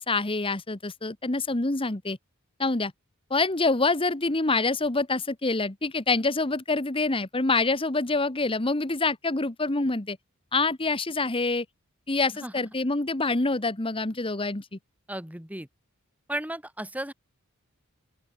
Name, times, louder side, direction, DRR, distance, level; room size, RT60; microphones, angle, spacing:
voice 1, 0.0-2.2 2.6-2.9 3.3-10.2 10.5-11.6 12.1-14.8, left 3 dB, 25° left, 1.3 m, -26 dB
voice 2, 15.1-15.7 16.3-17.1, right 1 dB, 5° right, 3.0 m, -34 dB
open air
head